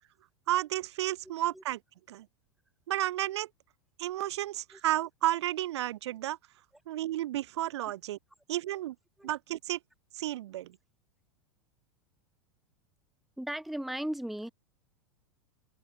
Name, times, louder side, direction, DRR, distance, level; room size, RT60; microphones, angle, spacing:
voice 1, 0.5-1.8 2.1-2.2 2.9-3.5 4.0-6.4 6.9-8.2 8.5-8.9 9.2-9.8 10.2-10.7, right 14 dB, 65° right, 0.8 m, -32 dB
voice 2, 13.4-14.5, right 1 dB, ahead, 0.8 m, -36 dB
figure-of-eight pair, 95°, 15 cm